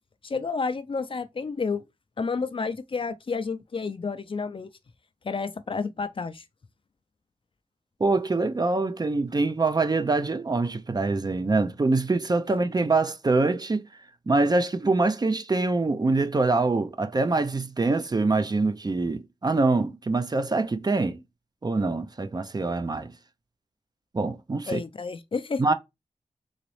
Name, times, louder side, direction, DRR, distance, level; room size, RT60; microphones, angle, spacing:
voice 1, 0.2-1.8 2.2-4.7 5.2-6.4 24.7-25.6, left 4 dB, 45° left, 0.4 m, -30 dB
voice 2, 8.0-13.9 14.3-21.2 21.6-23.1 24.1-24.8 25.6-25.7, right 3 dB, 35° right, 0.5 m, -24 dB
3.9 x 3.0 x 3.1 m
cardioid pair, 50°, 12 cm